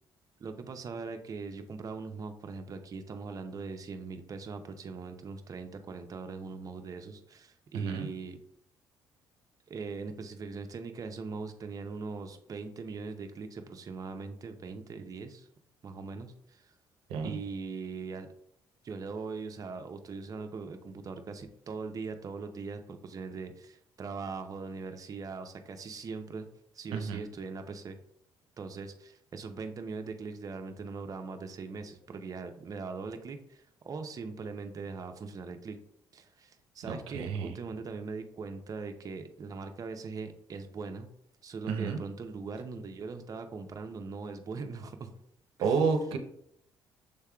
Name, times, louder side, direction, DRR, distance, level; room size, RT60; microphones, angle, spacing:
voice 1, 0.4-8.4 9.7-15.5 15.8-16.7 17.2-18.3 18.8-26.5 26.7-28.0 28.6-35.8 36.1-41.1 41.4-45.1 45.6-45.8, right 4 dB, 40° right, 6 dB, 0.6 m, -41 dB
voice 2, 7.7-8.1 17.1-17.4 26.9-27.2 36.9-37.6 41.7-42.0 45.6-46.2, right 5 dB, 80° right, 6 dB, 0.6 m, -30 dB
6.5 x 3.5 x 2.3 m, 0.72 s
cardioid pair, 80°, 9 cm